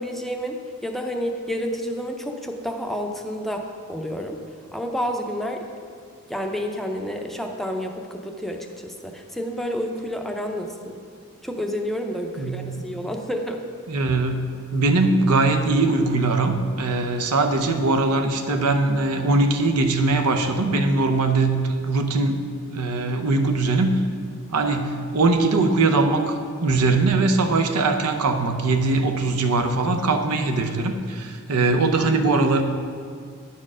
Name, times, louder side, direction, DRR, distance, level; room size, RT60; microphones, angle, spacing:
voice 1, 0.0-4.4 4.7-5.6 6.3-10.7 11.4-13.6, equal, ahead, 2 dB, 0.5 m, -29 dB
voice 2, 12.4-13.0 13.9-22.4 22.7-23.9 24.5-32.6, right 3 dB, 85° right, 5 dB, 0.7 m, -21 dB
9.7 x 4.5 x 6.1 m, 2.1 s
head